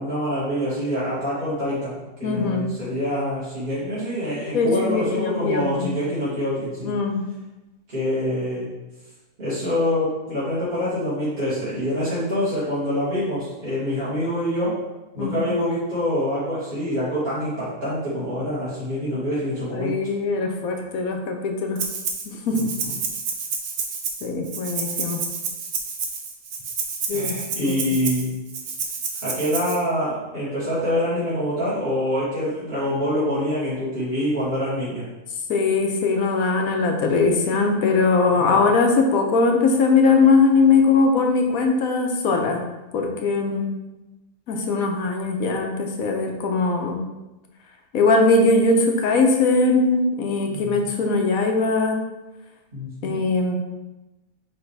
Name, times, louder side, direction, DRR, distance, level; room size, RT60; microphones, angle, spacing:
voice 1, 0.0-6.9 7.9-8.7 9.4-14.8 15.1-20.0 22.5-22.9 27.1-28.3 29.2-35.1 38.4-38.6 50.5-50.9 52.7-53.2, equal, 30° right, -12 dB, 2.4 m, -26 dB
voice 2, 2.2-2.7 4.5-5.9 6.8-7.2 15.2-15.5 19.7-21.8 22.3-22.8 24.2-25.2 27.1-27.3 27.6-28.0 35.5-42.6 42.9-43.7 44.5-47.0 47.9-52.0 53.0-53.6, left 3 dB, 80° left, 3 dB, 1.3 m, -20 dB
Rattle (instrument), 21.8-22.3 22.5-29.8, right 5 dB, 85° right, 1.3 m, -29 dB
8.8 x 3.3 x 3.3 m, 1.0 s
omnidirectional pair, 1.5 m